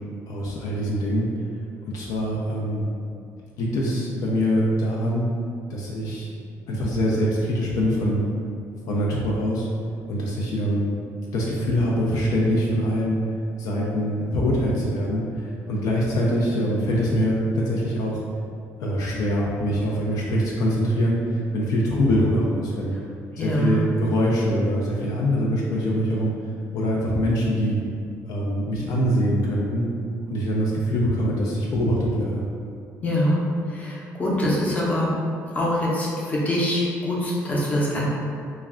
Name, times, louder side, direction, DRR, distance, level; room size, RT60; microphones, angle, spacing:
voice 1, 0.3-1.3 1.9-2.8 3.6-5.3 5.7-6.3 6.7-8.2 8.9-9.7 10.1-10.9 11.3-13.2 13.6-18.2 18.8-22.9 23.4-26.3 26.7-27.8 28.3-29.9 30.3-32.5, equal, 70° left, -4 dB, 0.4 m, -23 dB
voice 2, 23.3-23.9 33.0-35.2 35.5-38.1, left 1 dB, 25° left, -5 dB, 0.7 m, -24 dB
2.3 x 2.1 x 3.6 m, 2.3 s
cardioid pair, 110°, 6 cm